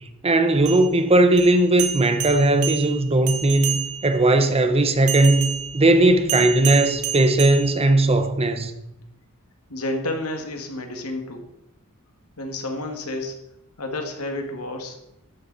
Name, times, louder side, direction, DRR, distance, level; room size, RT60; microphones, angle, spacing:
voice 1, 0.2-8.7, right 2 dB, 25° right, 0.9 m, -18 dB
sound 1, 0.5-4.2 5.1-8.3, right 8 dB, 70° right, 1.5 m, -30 dB
voice 2, 9.7-11.4 12.4-13.4 13.8-15.0, left 1 dB, 85° left, 2.0 m, -30 dB
13.0 x 9.8 x 4.1 m
head